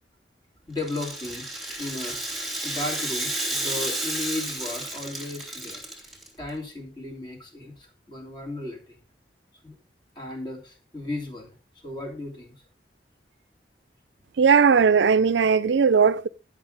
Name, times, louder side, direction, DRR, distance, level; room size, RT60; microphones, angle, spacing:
voice 1, 0.7-2.2 2.6-6.1 6.4-9.0 9.6-9.8 10.1-11.5 11.8-12.5, left 2 dB, 25° left, 3.0 m, -35 dB
Rattle (instrument), 0.8-6.3, right 1 dB, ahead, 2.8 m, -32 dB
voice 2, 14.4-16.3, right 6 dB, 85° right, 0.5 m, -18 dB
11.5 x 6.1 x 5.1 m
head